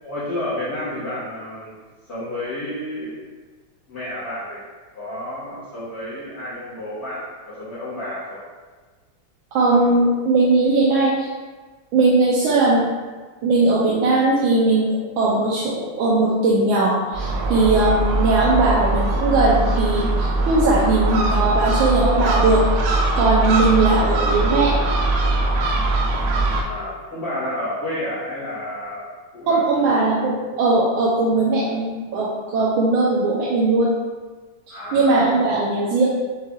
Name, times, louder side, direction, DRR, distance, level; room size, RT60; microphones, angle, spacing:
voice 1, 0.0-1.8 2.1-3.2 3.9-4.6 4.9-8.4 26.6-29.9 34.7-35.3, left 1 dB, 50° left, -13 dB, 1.6 m, -30 dB
voice 2, 9.5-11.3 11.9-12.9 13.4-24.8 29.5-33.9 34.7-36.1, right 2 dB, 75° right, -6 dB, 1.4 m, -19 dB
Gull seagull, 17.1-26.6, right 2 dB, 90° right, 1.5 m, -21 dB
6.4 x 3.3 x 2.3 m, 1.4 s
omnidirectional pair, 2.4 m